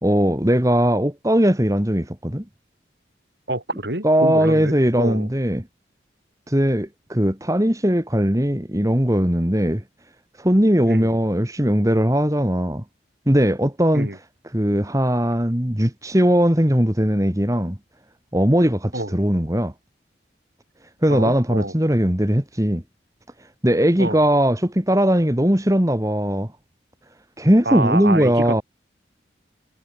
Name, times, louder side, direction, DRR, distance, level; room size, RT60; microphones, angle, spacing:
voice 1, 0.0-2.4 4.0-5.6 6.5-9.8 10.4-12.8 13.3-14.1 14.5-17.8 18.3-19.7 21.0-22.8 23.6-26.5 27.4-28.6, equal, 20° right, 2.0 m, -19 dB
voice 2, 3.5-5.3 10.9-11.1 13.9-14.2 18.9-19.1 21.1-21.7 24.0-24.2 27.6-28.6, right 2 dB, 65° right, 6.5 m, -27 dB
head